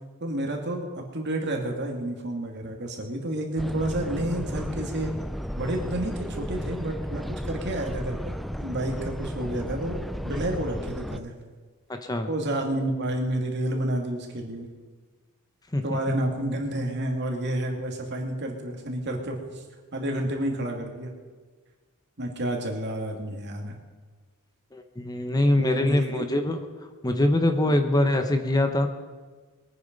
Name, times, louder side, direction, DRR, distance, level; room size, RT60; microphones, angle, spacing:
voice 1, 0.2-5.1 5.6-8.3 8.6-11.3 12.3-14.7 15.8-19.6 19.9-21.1 22.2-23.8 25.6-26.3, right 1 dB, 55° right, 2 dB, 2.5 m, -30 dB
sound 1, 3.6-11.2, equal, ahead, 0.4 m, -34 dB
voice 2, 24.7-26.6 27.0-28.9, left 1 dB, 20° left, 6 dB, 0.9 m, -23 dB
22.0 x 9.4 x 5.3 m, 1.4 s
head